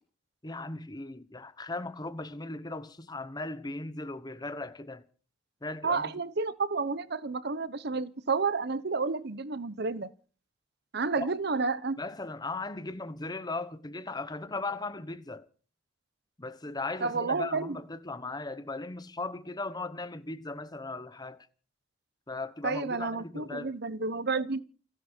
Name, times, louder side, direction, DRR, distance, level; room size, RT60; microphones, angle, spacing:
voice 1, 0.4-5.0 5.6-6.1 11.1-11.3 12.0-15.5 16.4-21.5 22.3-23.7, left 2 dB, 20° left, 1.1 m, -38 dB
voice 2, 5.8-10.1 10.9-12.0 17.0-17.8 22.6-24.6, right 4 dB, 55° right, 0.9 m, -30 dB
29.5 x 10.0 x 4.5 m
head